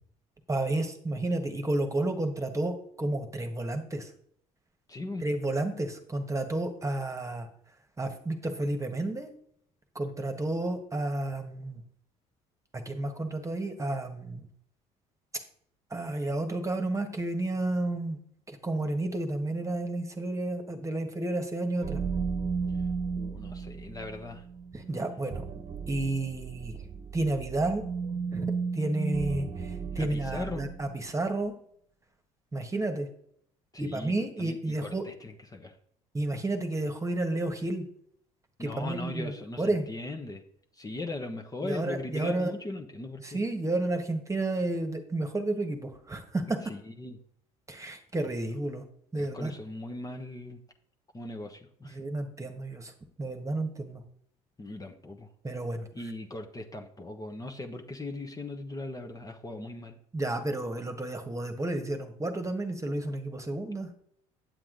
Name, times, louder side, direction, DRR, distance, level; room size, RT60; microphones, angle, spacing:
voice 1, 0.5-4.1 5.2-7.5 8.0-9.3 9.9-11.8 12.7-14.5 15.9-18.2 18.5-22.0 24.7-25.4 25.9-26.8 27.1-27.8 28.3-28.5 28.7-31.5 32.5-33.1 33.8-35.0 36.1-37.9 38.6-39.8 41.6-42.5 43.2-46.6 47.7-48.8 49.1-49.5 51.8-52.9 53.2-54.0 55.4-55.9 60.1-63.9, right 2 dB, 20° right, 6 dB, 1.5 m, -31 dB
voice 2, 4.9-5.3 23.2-24.4 29.9-30.7 33.7-34.1 34.4-35.7 38.6-40.4 40.7-43.4 46.7-47.2 49.2-50.6 51.1-52.0 54.6-55.3 55.9-59.9, left 2 dB, 20° left, 3 dB, 1.2 m, -39 dB
sound 1, 21.8-31.0, right 5 dB, 45° right, 1.2 m, -35 dB
8.8 x 7.6 x 3.9 m, 0.64 s
hypercardioid pair, 65°, 16 cm